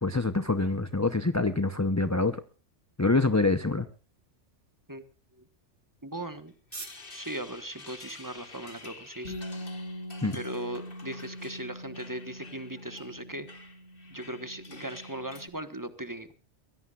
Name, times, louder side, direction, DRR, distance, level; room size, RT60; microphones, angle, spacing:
voice 1, 0.0-2.4 3.0-3.9 10.2-10.4, left 3 dB, 15° left, 11 dB, 0.7 m, -25 dB
sound 1, 3.9-10.9, right 3 dB, 75° right, 2.6 m, -53 dB
voice 2, 6.0-6.5 7.1-9.3 10.3-13.5 14.1-16.3, right 1 dB, 15° right, 10 dB, 1.3 m, -38 dB
sound 2, 6.5-15.4, left 3 dB, 50° left, 2.1 m, -49 dB
Bass guitar, 9.2-15.5, equal, 90° left, 4.8 m, -43 dB
23.0 x 17.0 x 2.4 m, 0.36 s
omnidirectional pair, 1.2 m